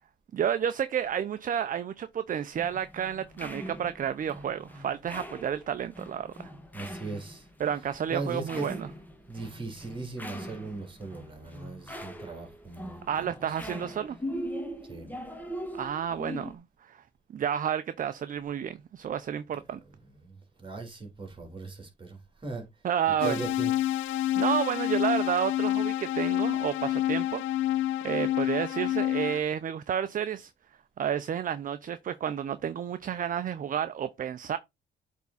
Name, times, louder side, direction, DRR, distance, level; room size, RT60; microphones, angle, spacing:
voice 1, 0.3-6.3 7.6-8.9 13.1-14.2 15.7-17.0 17.3-19.8 22.8-23.4 24.4-27.4 28.0-30.5 31.0-34.6, right 9 dB, 45° right, 0.5 m, -31 dB
sound 1, 2.5-16.6, equal, 10° left, 1.5 m, -41 dB
voice 2, 6.7-7.5 8.1-8.7 9.3-13.3 14.9-15.2 20.1-22.7 23.2-23.7, right 3 dB, 25° right, 3.0 m, -38 dB
sound 2, 23.2-29.4, left 13 dB, 85° left, 0.5 m, -28 dB
8.2 x 3.6 x 4.0 m
cardioid pair, 90°, 20 cm